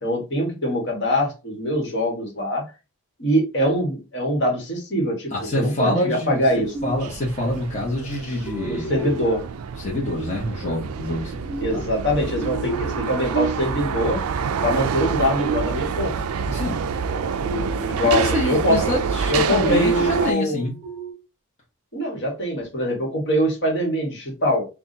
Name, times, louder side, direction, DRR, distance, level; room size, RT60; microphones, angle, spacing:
voice 1, 0.0-2.6 3.2-6.7 8.6-9.4 11.6-14.2 14.6-16.1 17.9-18.8 19.3-20.7 21.9-24.6, equal, 55° left, 1.6 m, -23 dB
voice 2, 5.3-6.4 6.8-9.1 9.8-11.8 16.5-16.8 17.8-20.7, left 1 dB, 30° left, 1.2 m, -26 dB
sound 1, 6.0-7.2 8.5-9.4 11.3-13.9 15.0-16.1 17.0-19.4 19.7-19.8 20.6-21.1, right 3 dB, 10° left, 2.1 m, -33 dB
sound 2, 6.4-20.3, right 6 dB, 80° right, 0.4 m, -27 dB
5.8 x 2.4 x 2.7 m
head